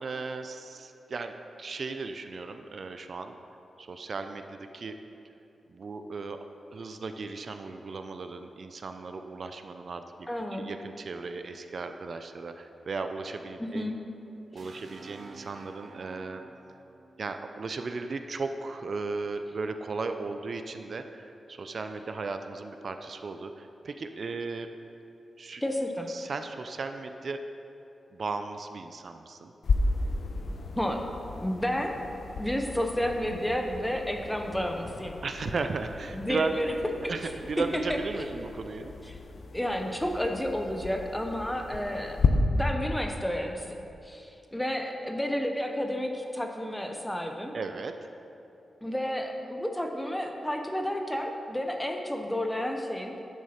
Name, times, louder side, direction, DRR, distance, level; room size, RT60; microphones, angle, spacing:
voice 1, 0.0-3.3 3.8-4.9 5.7-6.4 6.7-10.0 10.5-13.9 14.5-16.4 17.2-24.7 25.4-25.6 26.1-27.4 28.1-29.5 35.2-36.7 37.1-38.9 47.5-47.9, right 4 dB, 50° right, 7 dB, 0.4 m, -36 dB
voice 2, 10.3-10.6 13.6-14.0 25.6-26.1 30.8-31.0 31.4-31.9 32.4-35.2 36.1-36.7 37.0-37.1 37.9-38.3 39.0-39.2 39.5-42.2 42.5-43.7 44.0-47.5 48.8-53.1, equal, 5° left, 3 dB, 0.7 m, -31 dB
sound 1, 14.6-18.4, right 3 dB, 65° right, 0.8 m, -51 dB
sound 2, 29.6-42.3, left 4 dB, 60° left, 0.6 m, -34 dB
11.0 x 6.3 x 4.2 m, 2.9 s
wide cardioid pair, 155°, 0 cm